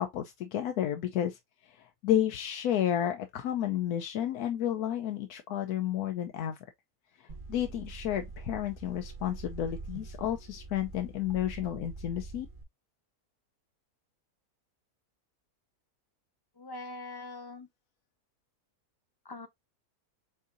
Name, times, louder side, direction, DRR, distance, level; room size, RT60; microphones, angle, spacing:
voice 1, 0.0-6.6 7.2-12.5, left 11 dB, 85° left, 1.2 m, -31 dB
sound 1, 7.3-12.6, right 3 dB, 40° right, 1.0 m, -44 dB
voice 2, 16.5-17.7 19.2-19.5, left 2 dB, 20° left, 0.6 m, -42 dB
7.3 x 2.7 x 2.5 m
omnidirectional pair, 1.6 m